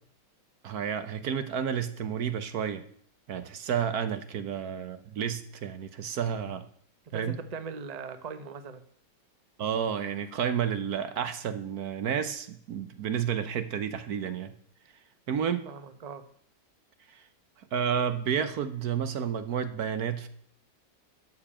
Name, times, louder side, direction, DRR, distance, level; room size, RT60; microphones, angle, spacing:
voice 1, 0.6-2.8 3.3-6.6 7.1-7.3 9.6-14.5 15.3-15.7 17.1-17.2 17.7-20.3, right 8 dB, 65° right, 11 dB, 1.2 m, -31 dB
voice 2, 7.0-8.8 15.6-16.3, right 5 dB, 30° right, 10 dB, 0.7 m, -40 dB
12.5 x 5.2 x 8.6 m, 0.62 s
omnidirectional pair, 1.9 m